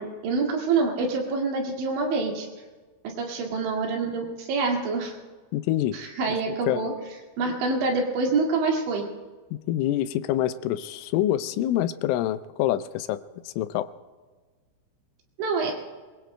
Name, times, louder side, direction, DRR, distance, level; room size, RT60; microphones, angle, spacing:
voice 1, 0.0-2.5 3.0-5.1 5.9-6.9 7.4-9.1 15.4-15.7, right 4 dB, 70° right, 0 dB, 4.4 m, -26 dB
voice 2, 5.5-6.0 6.3-6.4 6.7-6.9 9.5-13.9, left 13 dB, 90° left, 12 dB, 3.1 m, -26 dB
25.5 x 22.5 x 2.2 m, 1.3 s
omnidirectional pair, 5.5 m